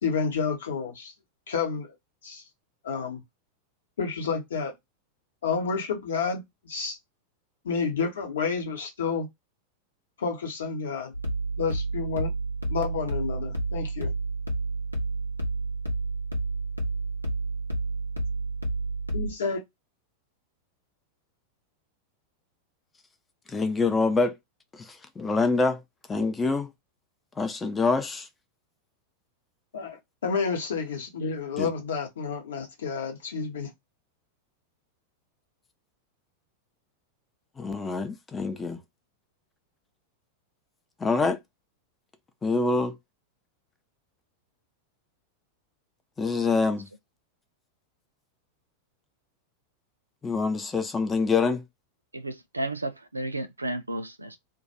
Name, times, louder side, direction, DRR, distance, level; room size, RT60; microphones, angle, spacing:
voice 1, 0.0-1.1 1.5-1.9 2.2-2.4 2.8-3.2 4.0-4.7 5.4-7.0 7.6-9.3 10.2-11.1 11.6-12.3 12.7-14.1 19.1-19.6 29.7-33.7, left 5 dB, 65° left, 0.8 m, -30 dB
sound 1, 11.1-19.3, right 2 dB, 90° left, 0.8 m, -30 dB
voice 2, 23.5-24.3 24.7-24.8 25.2-25.8 26.1-26.7 27.4-28.3 31.6-31.7 37.6-38.8 41.0-41.4 42.4-42.9 46.2-46.9 50.2-51.6, left 4 dB, 15° left, 0.5 m, -25 dB
voice 3, 52.1-54.4, right 1 dB, 80° right, 0.4 m, -33 dB
2.3 x 2.2 x 2.7 m
figure-of-eight pair, 90°, 0 cm